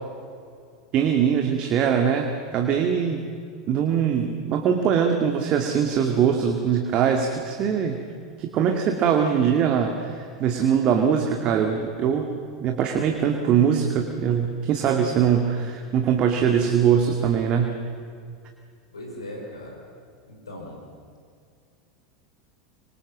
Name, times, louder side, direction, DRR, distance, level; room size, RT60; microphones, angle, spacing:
voice 1, 0.9-3.2 3.7-8.0 8.4-17.8, right 7 dB, 40° right, 4 dB, 2.3 m, -22 dB
voice 2, 18.9-19.8 20.3-20.8, left 1 dB, 80° left, 0 dB, 5.5 m, -38 dB
26.0 x 25.5 x 7.5 m, 2.3 s
figure-of-eight pair, 85°, 2 cm